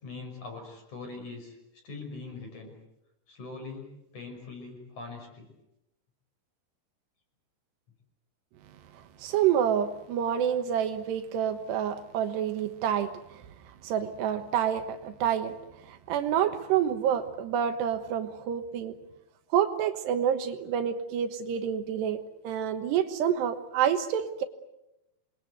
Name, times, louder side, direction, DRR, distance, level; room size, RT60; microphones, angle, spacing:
voice 1, 0.0-1.6 1.8-2.8 3.3-5.5, left 3 dB, 45° left, 7.0 m, -42 dB
voice 2, 9.2-13.4 13.8-15.6 15.8-19.0 19.5-24.4, right 9 dB, 75° right, 3.3 m, -28 dB
27.5 x 22.5 x 8.1 m
omnidirectional pair, 5.0 m